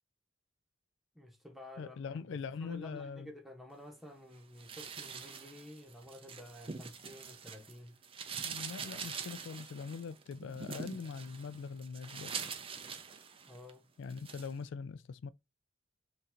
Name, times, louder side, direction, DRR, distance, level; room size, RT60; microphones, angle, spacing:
voice 1, 1.1-8.0 13.5-13.9, left 1 dB, ahead, 0.8 m, -51 dB
voice 2, 1.8-3.3 8.4-12.4 14.0-15.3, left 5 dB, 65° left, 0.3 m, -42 dB
sound 1, 4.6-7.7 8.0-13.7 14.1-14.5, right 6 dB, 30° right, 0.5 m, -44 dB
3.7 x 2.7 x 4.2 m
head